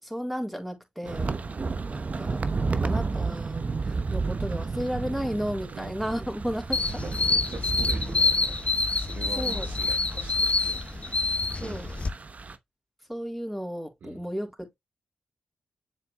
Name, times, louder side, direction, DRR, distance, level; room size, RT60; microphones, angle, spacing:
voice 1, 0.0-1.3 1.9-7.0 9.4-9.7 11.6-11.9 13.1-14.8, equal, 5° right, 3.8 m, -33 dB
voice 2, 1.0-1.5 5.2-6.0 6.8-8.7 9.0-12.2 14.0-14.2, right 5 dB, 70° right, 1.4 m, -44 dB
sound 1, 1.1-12.6, right 4 dB, 50° right, 0.9 m, -32 dB
sound 2, 6.7-12.1, left 3 dB, 40° left, 0.9 m, -26 dB
7.4 x 6.2 x 2.2 m
supercardioid pair, 40°, 3 cm